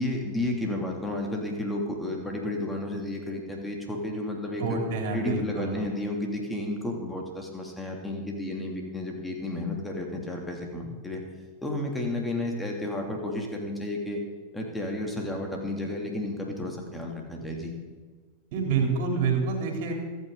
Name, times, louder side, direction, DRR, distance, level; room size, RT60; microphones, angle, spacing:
voice 1, 0.0-4.8 5.1-11.2 11.6-14.2 14.5-17.7, left 1 dB, 10° left, 1 dB, 3.1 m, -32 dB
voice 2, 4.6-5.8 18.5-19.9, right 4 dB, 50° right, 2 dB, 3.6 m, -27 dB
26.0 x 9.2 x 4.1 m, 1.5 s
figure-of-eight pair, 90°, 0 cm